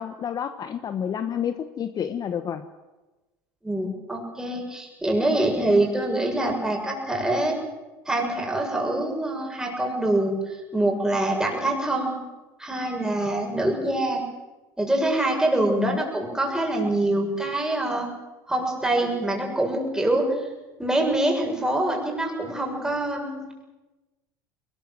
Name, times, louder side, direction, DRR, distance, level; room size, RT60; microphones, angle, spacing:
voice 1, 0.0-2.6 13.3-13.6 15.8-16.0, left 8 dB, 40° left, 10 dB, 1.2 m, -30 dB
voice 2, 3.6-7.6 8.1-12.2 12.6-14.2 14.8-18.1 18.5-20.5 20.8-23.6, right 1 dB, 5° right, 1 dB, 6.9 m, -25 dB
21.5 x 20.0 x 7.7 m, 1.1 s
supercardioid pair, 95°, 10 cm